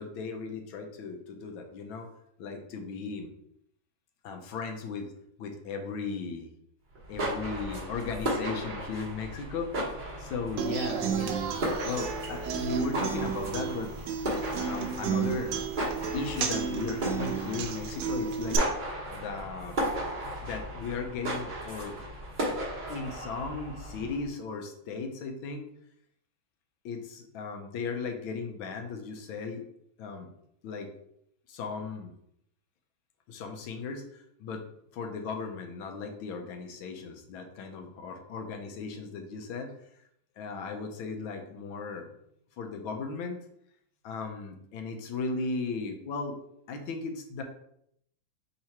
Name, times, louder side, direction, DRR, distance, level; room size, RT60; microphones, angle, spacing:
voice 1, 0.0-2.1 2.4-3.3 4.2-5.1 5.4-6.5 7.1-11.4 11.8-13.9 14.6-15.5 16.1-18.6 19.1-19.8 20.4-22.0 22.9-25.7 26.8-29.7 30.0-30.3 30.6-30.9 31.5-32.1 33.3-34.7 34.9-39.7 40.4-42.1 42.6-43.4 44.0-46.4 46.7-47.4, left 4 dB, 80° left, 5 dB, 1.4 m, -36 dB
sound 1, 6.9-24.3, right 1 dB, 35° right, 0.8 m, -36 dB
Human voice / Acoustic guitar, 10.6-18.6, right 7 dB, 70° right, 1.1 m, -32 dB
3.7 x 2.9 x 4.4 m, 0.73 s
omnidirectional pair, 2.2 m